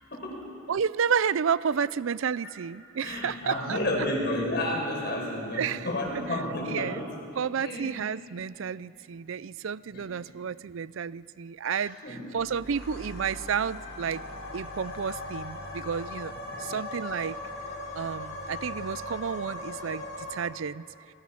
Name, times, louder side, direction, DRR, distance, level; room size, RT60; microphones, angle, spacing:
voice 1, 0.1-0.5 3.0-7.1 7.6-8.0 9.9-10.0 11.8-12.2 16.5-16.7, left 1 dB, 50° left, -1 dB, 5.1 m, -31 dB
voice 2, 0.7-3.8 5.5-5.9 6.7-7.1 7.4-14.2 14.5-16.3 16.6-17.4 17.9-20.8, right 7 dB, 70° right, 19 dB, 0.4 m, -31 dB
sound 1, 12.4-20.4, left 2 dB, 75° left, 3.9 m, -39 dB
26.0 x 21.0 x 5.9 m, 2.5 s
head